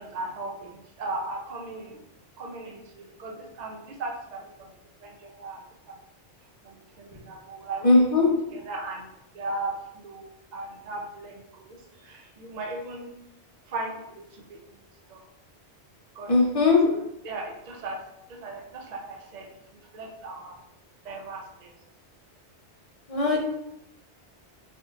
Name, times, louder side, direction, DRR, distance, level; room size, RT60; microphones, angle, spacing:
voice 1, 0.0-2.0 2.4-4.7 5.0-5.6 6.6-9.1 9.3-13.1 13.7-14.4 15.1-15.2 16.1-16.3 16.9-18.0 18.3-19.5 19.9-20.6 21.0-21.7, right 2 dB, 55° right, 0 dB, 0.5 m, -37 dB
voice 2, 7.8-8.3 16.3-16.8 23.1-23.5, left 3 dB, 45° left, -1 dB, 0.4 m, -19 dB
3.6 x 2.7 x 2.4 m, 0.82 s
omnidirectional pair, 1.1 m